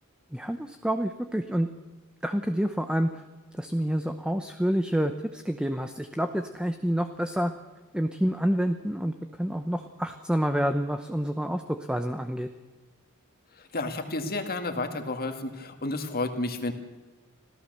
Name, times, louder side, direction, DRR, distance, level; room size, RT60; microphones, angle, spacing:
voice 1, 0.3-1.7 2.2-3.2 3.5-7.5 7.9-12.5, equal, 5° right, 8 dB, 0.8 m, -28 dB
voice 2, 13.5-16.7, left 2 dB, 45° left, 6 dB, 2.1 m, -31 dB
26.0 x 16.0 x 6.8 m, 1.3 s
head